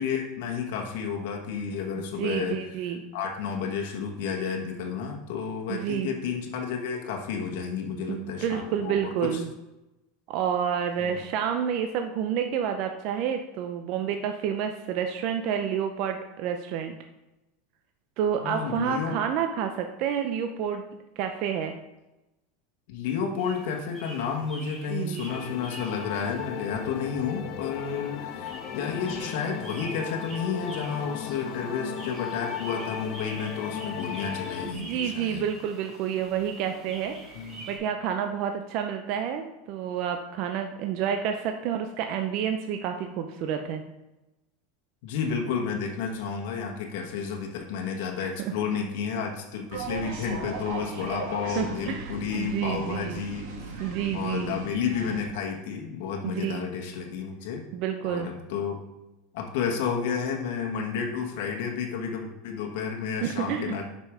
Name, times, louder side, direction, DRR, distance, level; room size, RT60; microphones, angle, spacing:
voice 1, 0.0-2.6 3.1-9.4 11.0-11.2 18.4-19.2 22.9-35.5 37.3-37.7 45.0-53.4 54.1-57.6 58.0-58.8 59.3-63.8, left 6 dB, 70° left, 1 dB, 1.3 m, -31 dB
voice 2, 1.9-3.0 5.7-6.1 8.1-9.5 10.3-16.9 18.2-20.8 21.2-21.7 24.9-25.2 34.7-37.1 37.7-43.8 48.2-48.3 51.4-53.2 53.8-54.6 56.2-56.7 57.7-58.3 63.2-63.7, right 8 dB, 55° right, 5 dB, 0.6 m, -29 dB
sound 1, 23.4-37.8, right 1 dB, 10° right, 2.6 m, -46 dB
sound 2, 25.3-34.7, left 9 dB, 50° left, 0.6 m, -36 dB
sound 3, 49.7-55.3, right 3 dB, 70° right, 1.7 m, -37 dB
5.5 x 5.2 x 4.9 m, 0.98 s
supercardioid pair, 130°, 0 cm